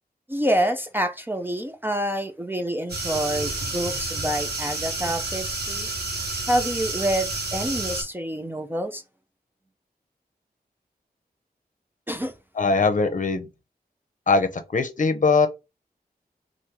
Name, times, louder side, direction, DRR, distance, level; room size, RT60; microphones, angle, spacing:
voice 1, 0.3-5.9 6.5-9.0 12.1-12.3, right 1 dB, 15° right, 0.4 m, -27 dB
sound 1, 2.9-8.0, right 3 dB, 85° right, 1.1 m, -30 dB
voice 2, 12.6-13.5 14.3-15.5, left 4 dB, 50° left, 0.7 m, -21 dB
3.5 x 2.6 x 2.8 m
wide cardioid pair, 100°, 16 cm